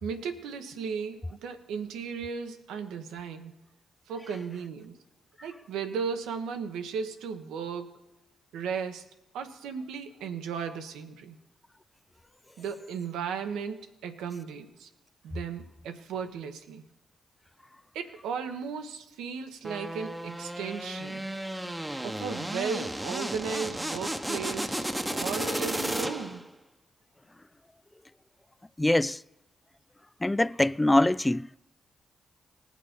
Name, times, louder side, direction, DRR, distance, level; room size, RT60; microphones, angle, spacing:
voice 1, 0.0-3.5 4.1-5.0 5.4-8.1 8.5-9.0 9.3-11.4 12.6-14.9 15.2-16.8 17.9-21.2 22.0-26.5, right 6 dB, 85° right, 1.0 m, -36 dB
sound 1, 19.6-26.5, right 1 dB, 10° right, 1.0 m, -33 dB
voice 2, 28.8-29.2 30.2-31.5, left 1 dB, 15° left, 0.3 m, -23 dB
19.5 x 6.5 x 5.2 m
supercardioid pair, 45°, 0 cm